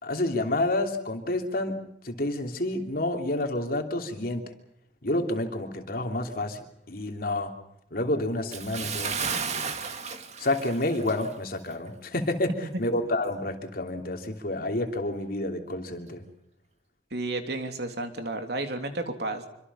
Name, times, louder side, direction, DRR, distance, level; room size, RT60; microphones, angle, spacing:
voice 1, 0.0-1.8 2.0-4.5 5.0-6.6 6.9-7.5 7.9-9.7 10.4-12.5 12.8-16.2, left 1 dB, 55° left, 4 dB, 3.1 m, -29 dB
Bathtub (filling or washing) / Splash splatter, 8.5-11.4 11.7-11.9 12.4-12.5, right 6 dB, 40° right, 2.1 m, -33 dB
voice 2, 17.1-19.5, right 2 dB, 65° right, 6 dB, 3.2 m, -32 dB
26.5 x 25.0 x 5.7 m, 0.77 s
head